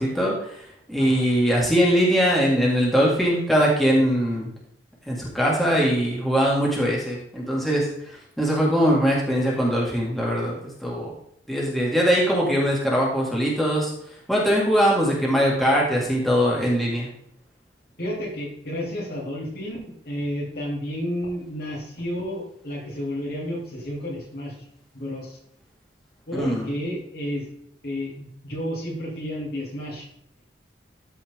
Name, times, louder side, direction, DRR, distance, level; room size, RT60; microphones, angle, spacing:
voice 1, 0.0-4.5 5.1-10.6 10.8-11.1 11.5-13.9 14.3-17.1 26.3-26.7, equal, ahead, -4 dB, 2.1 m, -21 dB
voice 2, 18.0-24.6 24.9-25.4 26.3-27.5 27.8-30.1, equal, 60° left, -3 dB, 3.2 m, -31 dB
13.5 x 4.8 x 3.7 m, 0.72 s
head